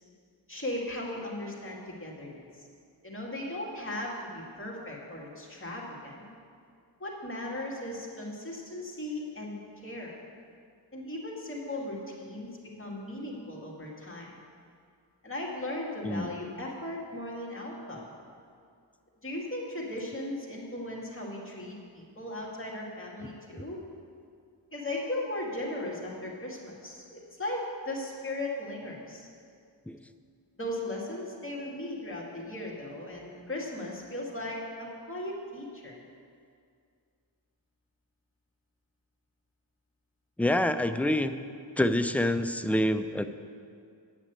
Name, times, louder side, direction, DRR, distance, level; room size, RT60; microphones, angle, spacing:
voice 1, 0.5-2.7 3.0-6.3 7.0-10.2 10.9-12.5 12.8-14.3 15.2-18.1 19.2-23.8 24.7-29.3 30.6-36.0, left 1 dB, 30° left, -3 dB, 2.2 m, -37 dB
voice 2, 40.4-41.3 41.8-43.2, left 1 dB, 5° left, 9 dB, 0.4 m, -26 dB
9.2 x 6.1 x 8.1 m, 2.3 s
wide cardioid pair, 45°, 44 cm